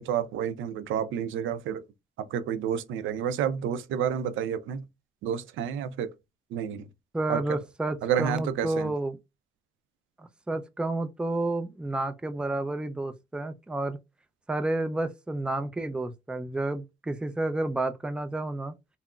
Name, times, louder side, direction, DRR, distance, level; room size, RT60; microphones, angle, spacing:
voice 1, 0.0-1.9 2.2-4.8 5.2-6.1 6.5-6.9 7.3-7.6 8.0-8.9, right 8 dB, 85° right, 0.4 m, -30 dB
voice 2, 7.1-9.2 10.2-14.0 14.5-18.7, right 2 dB, 5° right, 0.4 m, -30 dB
3.6 x 2.0 x 2.3 m
cardioid pair, 90°, 20 cm